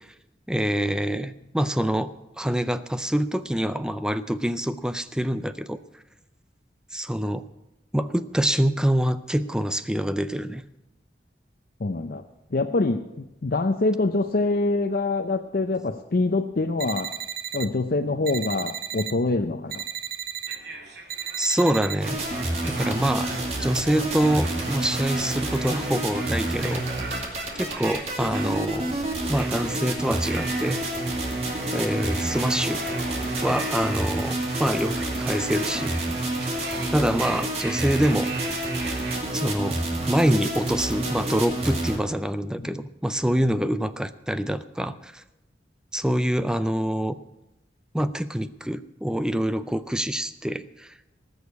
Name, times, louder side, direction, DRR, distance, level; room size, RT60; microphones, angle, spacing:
voice 1, 0.5-2.1 2.4-5.8 6.9-7.4 7.9-10.6 21.4-22.2 22.7-23.3 23.6-26.8 27.1-27.2 27.6-29.0 29.3-30.8 31.7-32.8 33.4-36.0 36.9-38.3 39.3-39.8 40.1-45.2 45.9-47.2 47.9-50.9, equal, 5° right, 12 dB, 0.4 m, -25 dB
voice 2, 11.8-12.2 12.5-17.2 17.5-19.8 42.6-42.7, left 2 dB, 55° left, 5 dB, 0.6 m, -25 dB
sound 1, 16.8-17.7 18.3-19.1 19.7-20.6 21.1-22.0, right 10 dB, 55° right, 0.7 m, -34 dB
sound 2, 20.5-39.2, right 3 dB, 75° right, 2.5 m, -38 dB
sound 3, 22.0-42.0, right 1 dB, 40° right, 2.5 m, -29 dB
19.0 x 6.4 x 8.3 m, 0.93 s
head